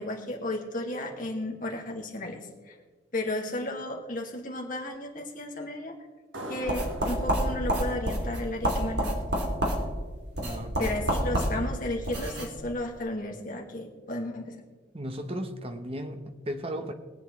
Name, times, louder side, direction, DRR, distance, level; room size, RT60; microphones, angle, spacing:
voice 1, 0.0-2.8 3.1-6.0 6.5-9.2 10.8-14.6, left 1 dB, 40° left, 0 dB, 2.0 m, -34 dB
sound 1, 6.3-9.6, equal, 80° right, 1.4 m, -43 dB
sound 2, 6.7-12.5, equal, 60° right, 2.6 m, -29 dB
voice 2, 10.4-11.2 14.9-16.9, equal, 30° right, 7 dB, 0.9 m, -36 dB
22.5 x 8.2 x 3.2 m, 1.4 s
head